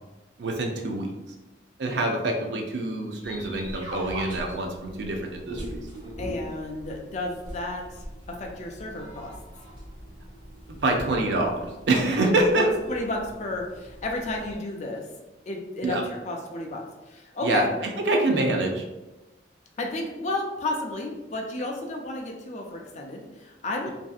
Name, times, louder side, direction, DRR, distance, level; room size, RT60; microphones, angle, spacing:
voice 1, 0.4-1.1 1.8-5.6 10.7-11.5 11.9-12.7 15.8-16.0 17.4-17.7 18.1-18.8, right 2 dB, 70° right, 1 dB, 0.4 m, -25 dB
sound 1, 3.2-14.6, equal, 25° right, 1.1 m, -41 dB
voice 2, 6.2-9.3 12.5-15.0 15.5-17.7 19.8-23.9, left 2 dB, 40° left, 1 dB, 0.4 m, -32 dB
2.6 x 2.3 x 2.4 m, 1.1 s
head